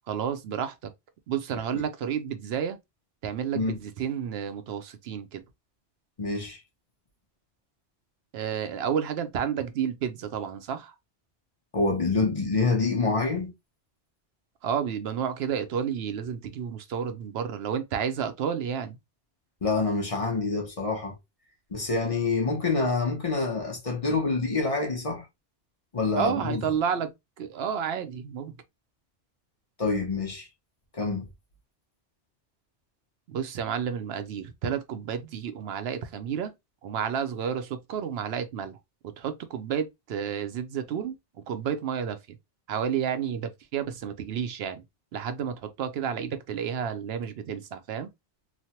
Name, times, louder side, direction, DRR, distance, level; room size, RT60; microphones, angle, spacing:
voice 1, 0.1-0.9 1.3-2.8 3.2-5.4 8.3-10.9 14.6-19.0 26.2-28.5 33.3-36.5 36.8-38.8 39.2-41.2 41.5-42.4 42.7-44.8 45.1-48.1, right 8 dB, 70° right, 0.8 m, -31 dB
voice 2, 6.2-6.6 11.7-13.5 19.6-21.2 21.7-25.3 25.9-26.6 29.8-30.5 30.9-31.3, left 3 dB, 35° left, 0.6 m, -26 dB
3.1 x 2.1 x 2.8 m
omnidirectional pair, 1.2 m